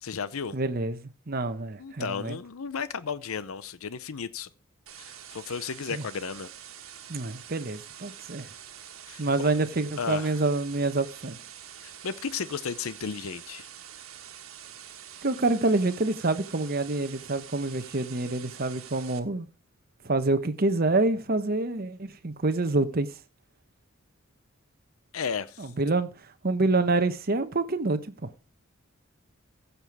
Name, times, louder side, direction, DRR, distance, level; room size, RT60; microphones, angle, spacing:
voice 1, 0.0-0.5 1.8-4.5 5.0-6.5 9.1-9.5 10.0-10.4 11.8-13.7 25.1-25.7, left 6 dB, 85° left, 0.6 m, -34 dB
voice 2, 0.5-1.0 1.3-2.4 5.9-6.0 7.1-8.5 9.2-11.4 15.2-19.5 20.0-23.1 25.6-26.1 26.4-28.3, right 2 dB, 45° right, 1.0 m, -27 dB
sound 1, 4.9-19.2, right 9 dB, 85° right, 1.5 m, -46 dB
15.5 x 6.9 x 4.8 m
head